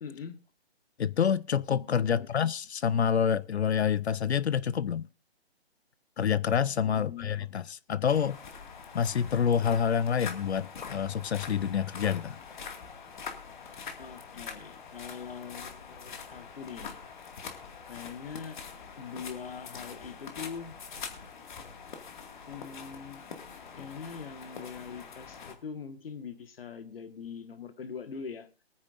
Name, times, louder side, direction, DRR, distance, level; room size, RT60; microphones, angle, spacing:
voice 1, 0.0-0.4 2.0-2.3 6.8-7.6 14.0-17.0 17.9-18.6 19.0-20.7 22.5-23.5 23.8-28.5, left 6 dB, 60° left, 1.6 m, -42 dB
voice 2, 1.0-5.1 6.2-8.4 8.9-12.4, left 8 dB, 80° left, 0.6 m, -27 dB
sound 1, 8.1-25.5, left 6 dB, 45° left, 2.2 m, -44 dB
23.0 x 9.6 x 2.6 m
hypercardioid pair, 150°, 32 cm